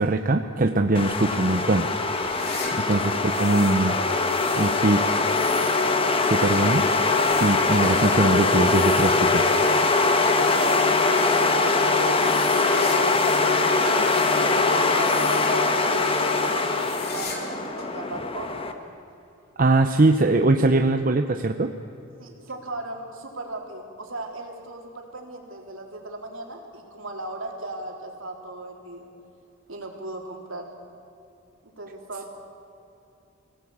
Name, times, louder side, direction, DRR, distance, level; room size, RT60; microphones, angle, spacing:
voice 1, 0.0-1.9 2.9-4.0 4.6-5.0 6.2-6.8 7.4-9.5 19.6-21.7, right 2 dB, 40° right, 6 dB, 0.8 m, -21 dB
sound 1, 0.9-18.7, left 3 dB, 25° left, 1.3 m, -22 dB
sound 2, 2.1-3.8 4.1-13.5 13.8-15.7 16.0-16.3 16.6-17.5 17.8-17.9 18.7-18.8 20.0-20.1, left 4 dB, 50° left, 3.4 m, -40 dB
voice 2, 2.6-3.2 11.4-13.3 13.7-18.7 22.2-29.1 29.7-30.7 31.6-32.3, right 2 dB, 70° right, 1 dB, 3.5 m, -37 dB
24.5 x 16.5 x 8.6 m, 2.8 s
head